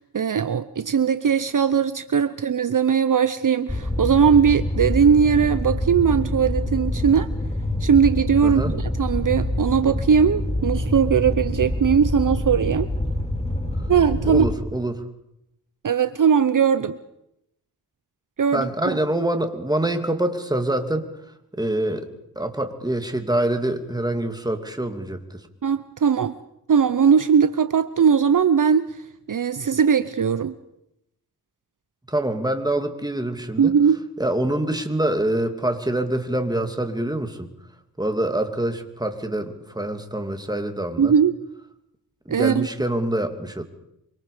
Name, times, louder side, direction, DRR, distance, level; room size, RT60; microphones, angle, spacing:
voice 1, 0.0-7.3 7.8-12.9 13.9-14.4 15.8-17.0 18.4-18.7 25.6-26.4 26.7-28.9 29.3-30.5 33.6-34.0 41.0-41.3 42.3-42.7, right 7 dB, 50° right, 13 dB, 0.8 m, -19 dB
Fire, 3.7-14.5, left 1 dB, 15° left, 3.5 m, -26 dB
voice 2, 8.4-8.7 14.3-15.0 18.5-21.1 21.6-22.1 22.4-25.4 32.1-33.8 34.2-37.5 38.0-41.1 42.3-43.6, right 1 dB, 10° right, 6 dB, 2.7 m, -25 dB
25.5 x 24.5 x 5.0 m, 0.82 s
cardioid pair, 65°, 39 cm